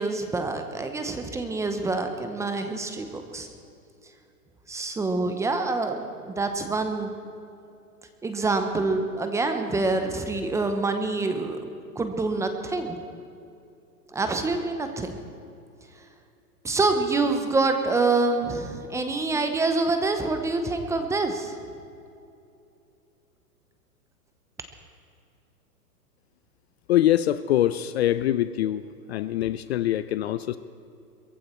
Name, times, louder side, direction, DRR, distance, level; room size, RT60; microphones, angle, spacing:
voice 1, 0.0-3.5 4.7-6.0 6.2-7.1 8.2-11.7 12.0-13.0 14.1-15.2 16.6-21.5, right 3 dB, 5° right, 6 dB, 0.7 m, -26 dB
voice 2, 26.9-28.8 29.1-30.6, left 13 dB, 45° left, 14 dB, 0.5 m, -24 dB
22.0 x 15.0 x 4.4 m, 2.6 s
hypercardioid pair, 135°, 47 cm